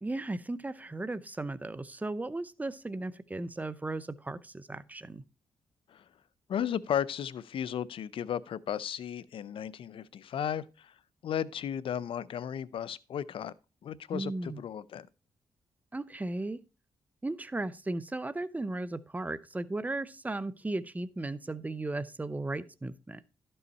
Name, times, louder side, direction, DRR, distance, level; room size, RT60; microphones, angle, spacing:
voice 1, 0.0-5.2 14.1-14.6 15.9-16.6 17.2-23.2, right 2 dB, 15° right, 0.7 m, -36 dB
voice 2, 6.5-10.9 11.2-13.5 13.8-15.1, left 9 dB, 70° left, 0.5 m, -35 dB
12.0 x 5.5 x 4.1 m
cardioid pair, 65°, 10 cm